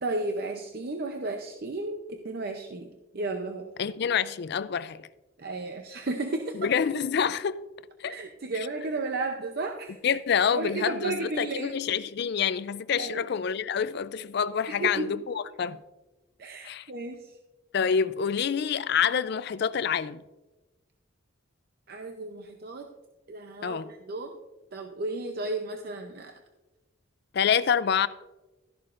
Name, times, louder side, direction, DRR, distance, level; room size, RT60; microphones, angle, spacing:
voice 1, 0.0-3.7 5.4-6.7 8.0-10.0 10.5-11.7 13.0-13.3 14.7-15.1 16.4-17.4 21.9-22.9 23.3-24.4 24.7-26.3, right 3 dB, 50° right, 0.6 m, -33 dB
voice 2, 3.8-5.1 6.5-7.6 8.0-8.1 10.0-15.8 16.6-16.9 17.7-20.2 23.6-23.9 27.3-28.1, left 7 dB, 55° left, 0.4 m, -27 dB
13.0 x 11.0 x 2.5 m
head